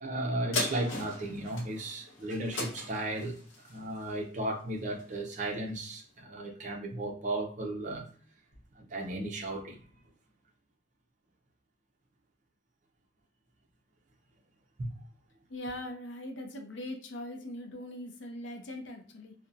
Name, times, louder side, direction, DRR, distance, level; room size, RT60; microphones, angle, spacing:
voice 1, 0.0-3.4 3.7-8.1 8.8-9.8 14.8-14.9, right 1 dB, 40° right, 0.5 m, -35 dB
sound 1, 0.5-5.3 5.8-5.9, left 2 dB, 85° left, 0.9 m, -38 dB
voice 2, 15.5-19.3, left 1 dB, 65° left, 0.5 m, -41 dB
2.6 x 2.1 x 2.5 m
head